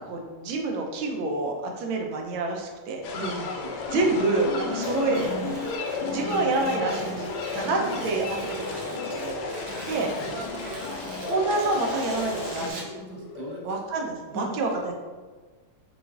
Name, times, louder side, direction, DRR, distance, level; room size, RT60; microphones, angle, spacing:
voice 1, 0.0-3.0 3.9-5.3 6.0-7.2 7.5-10.1 11.3-12.9 13.6-14.9, right 2 dB, 85° right, 1 dB, 1.5 m, -28 dB
sound 1, 3.0-12.7, left 3 dB, 70° left, 1.0 m, -34 dB
voice 2, 3.1-3.8 4.7-4.9 7.6-7.9 9.9-11.1 12.7-13.8 14.3-14.8, right 2 dB, 45° right, -3 dB, 0.9 m, -39 dB
sound 2, 3.3-13.9, left 4 dB, 90° left, 1.5 m, -37 dB
Tearing, 4.7-13.0, right 2 dB, 65° right, 1.5 m, -45 dB
5.9 x 2.5 x 3.5 m, 1.4 s
omnidirectional pair, 2.2 m